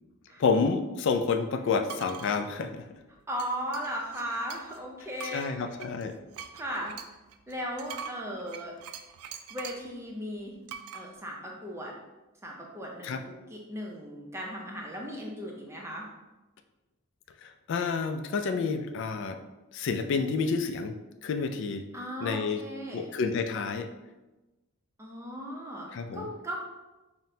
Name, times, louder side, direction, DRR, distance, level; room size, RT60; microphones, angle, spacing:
voice 1, 0.4-2.9 5.3-6.1 13.0-13.2 17.4-19.4 19.7-20.9 21.2-21.8 22.2-22.6 22.9-23.9 25.9-26.3, left 5 dB, 55° left, 7 dB, 0.3 m, -29 dB
sound 1, 1.9-2.4 3.4-4.8 5.2-9.9 10.7-11.1, right 7 dB, 90° right, 0.3 m, -43 dB
voice 2, 3.3-5.7 6.5-6.9 7.5-8.7 9.5-10.5 10.9-12.0 12.4-16.1 21.9-23.1 25.0-26.6, equal, 10° right, -1 dB, 0.5 m, -37 dB
5.7 x 2.1 x 2.7 m, 1.1 s
head